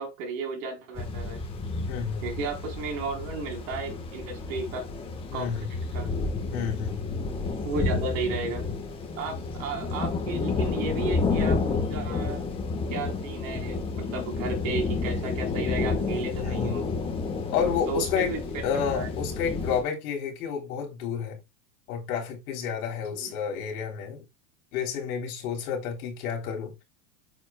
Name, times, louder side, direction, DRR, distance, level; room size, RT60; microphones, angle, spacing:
voice 1, 0.0-1.4 2.2-4.8 5.3-6.1 7.6-8.7 9.2-11.6 11.9-12.4 12.9-16.9 17.9-19.1 23.2-23.3, right 3 dB, 60° right, 4.1 m, -34 dB
sound 1, 1.0-19.8, left 4 dB, 10° left, 1.3 m, -30 dB
voice 2, 1.9-2.3 5.3-5.7 6.5-7.0 16.4-16.8 17.5-21.4 21.9-24.3 24.7-26.8, left 7 dB, 70° left, 3.8 m, -30 dB
9.3 x 7.2 x 2.3 m
supercardioid pair, 175°, 45 cm